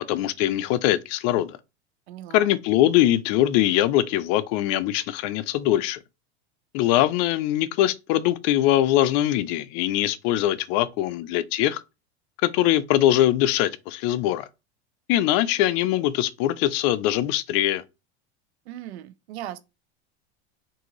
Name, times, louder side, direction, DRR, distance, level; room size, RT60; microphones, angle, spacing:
voice 1, 0.1-1.6 2.3-6.0 6.7-11.8 12.4-14.5 15.1-17.8, left 13 dB, 50° left, 0.4 m, -22 dB
voice 2, 2.1-2.5 18.7-19.6, right 12 dB, 75° right, 0.6 m, -38 dB
3.7 x 2.6 x 3.0 m
hypercardioid pair, 105°, 32 cm